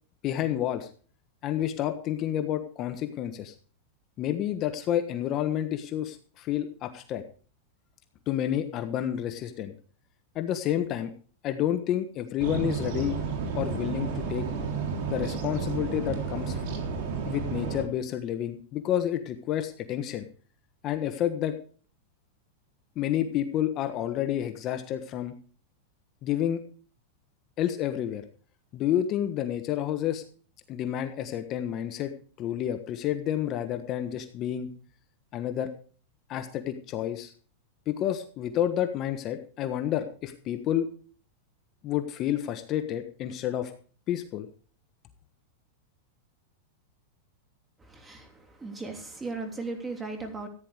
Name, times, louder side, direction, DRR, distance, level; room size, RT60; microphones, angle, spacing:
voice 1, 0.2-0.9 1.4-3.5 4.2-7.2 8.3-9.7 10.3-11.1 11.4-13.2 13.5-14.5 15.1-16.7 17.2-20.3 20.8-21.6 22.9-25.3 26.2-26.6 27.6-28.2 28.7-30.2 30.7-34.7 35.3-35.7 36.3-37.3 37.9-40.9 41.8-43.7 44.1-44.5, left 11 dB, 35° left, 8 dB, 1.3 m, -29 dB
sound 1, 12.4-17.8, right 5 dB, 55° right, 3.7 m, -31 dB
voice 2, 47.8-50.5, right 3 dB, 10° right, 5 dB, 3.0 m, -37 dB
14.5 x 10.0 x 4.9 m, 0.42 s
supercardioid pair, 140°, 0 cm